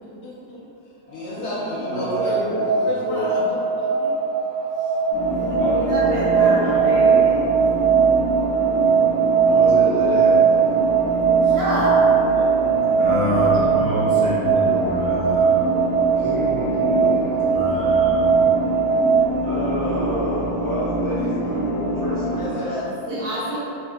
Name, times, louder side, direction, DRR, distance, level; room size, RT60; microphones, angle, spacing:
voice 1, 0.0-0.7 1.1-4.1 6.6-7.0 22.3-22.9, left 2 dB, 70° left, -8 dB, 1.4 m, -32 dB
sound 1, 1.1-19.3, right 6 dB, 20° right, 0.8 m, -20 dB
voice 2, 1.9-2.6 3.0-3.3 5.6-7.2 9.4-10.5 13.5-13.7 14.1-14.2 16.2-17.5 19.4-22.8 23.1-23.2, equal, 15° left, -13 dB, 0.9 m, -28 dB
sound 2, 5.1-22.4, equal, 50° left, 1.6 m, -26 dB
voice 3, 5.3-7.4 11.5-12.0 23.1-23.6, right 1 dB, 85° right, -12 dB, 1.7 m, -28 dB
voice 4, 13.0-15.6 17.5-18.4, equal, 65° right, -8 dB, 1.0 m, -26 dB
4.0 x 2.7 x 2.3 m, 2.7 s
omnidirectional pair, 1.9 m